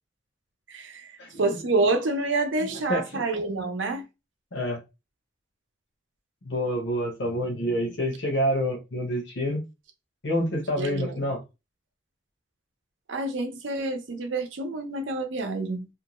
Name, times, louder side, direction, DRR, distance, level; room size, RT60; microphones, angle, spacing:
voice 1, 0.7-4.0 10.8-11.3 13.1-15.9, right 3 dB, 80° right, 0.6 m, -28 dB
voice 2, 2.6-3.2 4.5-4.8 6.4-9.6 10.2-11.4, equal, 70° left, 0.8 m, -28 dB
2.5 x 2.2 x 2.9 m
head